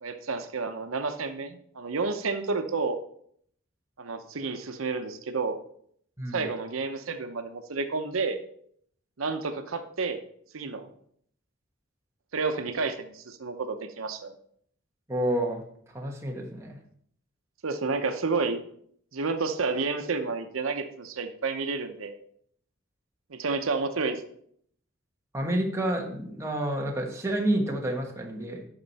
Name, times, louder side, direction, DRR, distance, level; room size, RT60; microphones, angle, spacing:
voice 1, 0.0-3.0 4.0-5.6 6.3-8.4 9.2-10.2 10.5-10.9 12.3-14.3 17.6-18.6 19.1-22.1 23.3-24.2, right 4 dB, 90° right, 7 dB, 0.7 m, -30 dB
voice 2, 15.1-15.6 15.9-16.8 25.3-28.6, right 1 dB, 15° right, 0 dB, 1.2 m, -29 dB
8.8 x 6.0 x 4.1 m, 0.65 s
head